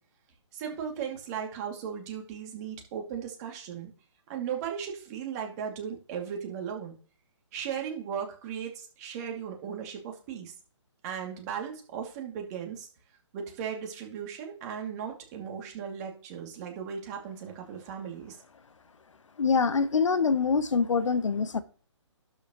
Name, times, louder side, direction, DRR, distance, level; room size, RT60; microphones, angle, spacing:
voice 1, 0.5-3.9 4.3-6.9 7.5-10.5 11.0-12.9 13.3-18.4, right 8 dB, 30° right, 2.6 m, -37 dB
voice 2, 19.4-21.6, left 5 dB, 75° left, 1.0 m, -25 dB
12.0 x 6.4 x 3.1 m
hypercardioid pair, 145°, 16 cm